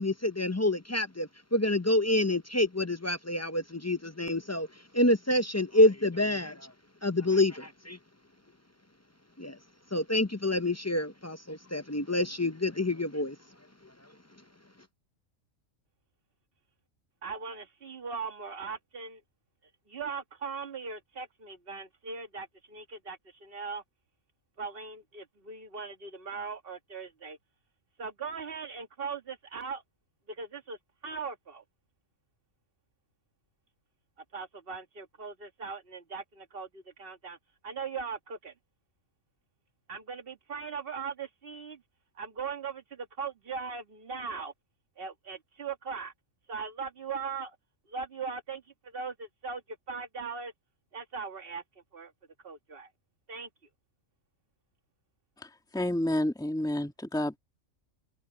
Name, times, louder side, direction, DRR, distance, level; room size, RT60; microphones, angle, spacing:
voice 1, 0.0-4.7 4.9-6.7 7.0-8.0 9.4-9.6 9.9-13.4, left 1 dB, 25° left, 0.3 m, -27 dB
voice 2, 17.2-19.2 19.9-23.8 24.6-27.4 28.0-29.8 30.3-30.8 31.0-31.6 34.3-37.4 37.6-38.5 39.9-41.8 42.2-44.5 45.0-46.1 46.5-47.6 47.9-49.6 49.9-50.5 50.9-51.6 51.9-52.1 52.4-52.9 53.3-53.5, right 5 dB, 40° right, 1.9 m, -39 dB
voice 3, 55.4-57.4, left 1 dB, 5° left, 2.1 m, -30 dB
open air
omnidirectional pair, 1.4 m